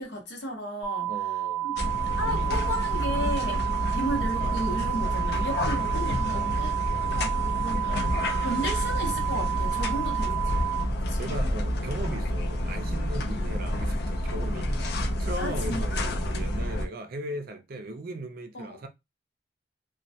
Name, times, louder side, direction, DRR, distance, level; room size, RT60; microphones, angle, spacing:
voice 1, 0.0-1.1 1.6-1.8 2.2-6.7 7.1-10.4 11.0-11.3 15.4-16.1 18.5-18.8, equal, 75° left, 0.8 m, -34 dB
sound 1, 0.8-10.8, right 13 dB, 15° left, 0.6 m, -30 dB
voice 2, 1.1-1.7 3.5-3.7 6.3-6.9 9.8-10.1 11.2-18.9, right 1 dB, 55° right, 0.4 m, -38 dB
sound 2, 1.8-16.9, left 1 dB, 60° left, 0.4 m, -29 dB
2.2 x 2.1 x 2.6 m
head